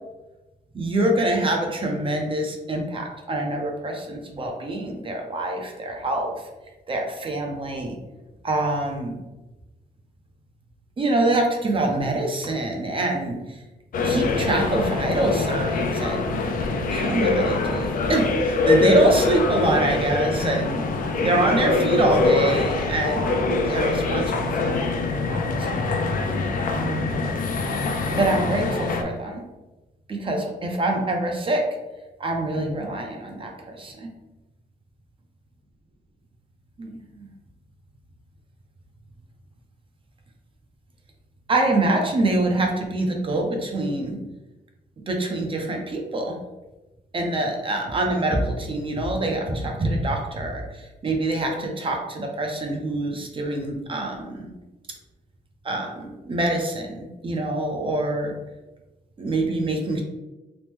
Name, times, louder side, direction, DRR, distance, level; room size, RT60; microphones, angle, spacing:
voice 1, 0.7-6.4 6.9-8.0 8.4-9.2 11.0-13.6 14.0-16.4 16.9-20.9 21.2-25.0 25.3-25.7 26.7-27.3 28.2-29.4 30.1-31.6 32.2-34.1 36.8-37.3 41.5-44.2 45.1-46.4 47.1-54.5 55.6-58.3 59.2-60.0, right 2 dB, 30° right, 2 dB, 0.5 m, -25 dB
sound 1, 13.9-29.0, left 3 dB, 55° left, 0.4 m, -24 dB
3.0 x 2.0 x 3.3 m, 1.1 s
cardioid pair, 130°, 17 cm